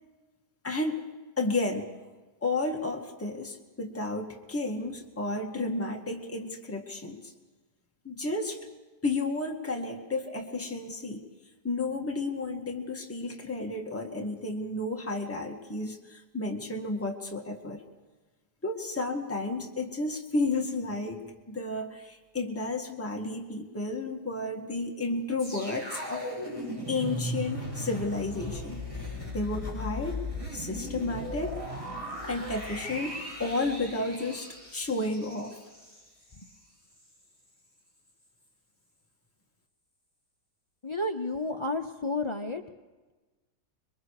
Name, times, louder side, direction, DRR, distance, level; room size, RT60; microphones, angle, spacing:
voice 1, 0.6-1.1 1.4-1.9 2.4-7.3 8.0-8.6 9.0-11.2 11.6-17.8 18.6-26.3 26.9-30.2 30.5-31.6 32.2-35.6, left 2 dB, 10° left, 1 dB, 1.8 m, -32 dB
sound 1, 25.4-36.6 36.9-37.1, left 1 dB, 10° right, 6.6 m, -37 dB
voice 2, 40.8-42.6, left 2 dB, 35° left, 5 dB, 0.4 m, -31 dB
26.5 x 22.0 x 4.9 m, 1.2 s
omnidirectional pair, 1.9 m